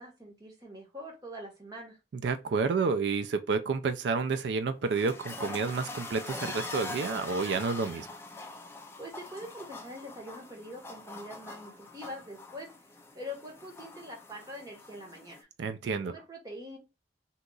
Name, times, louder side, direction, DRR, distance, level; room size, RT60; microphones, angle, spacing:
voice 1, 0.0-2.0 9.0-12.7 13.1-15.5 16.0-16.8, equal, 20° right, 1.1 m, -44 dB
voice 2, 2.2-8.1 15.6-16.1, right 4 dB, 75° right, 0.3 m, -30 dB
sound 1, 4.6-15.4, left 3 dB, 15° left, 0.3 m, -43 dB
2.8 x 2.3 x 3.8 m
head